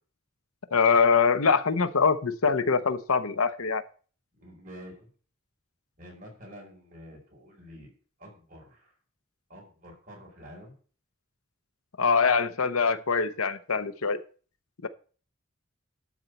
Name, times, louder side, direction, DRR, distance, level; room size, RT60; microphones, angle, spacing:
voice 1, 0.7-3.8 12.0-14.2 14.8-14.9, left 5 dB, 90° left, 0.9 m, -23 dB
voice 2, 4.4-5.1 6.0-7.9 8.2-8.9 9.5-10.7, equal, 40° right, 5.2 m, -48 dB
12.0 x 4.4 x 8.0 m
head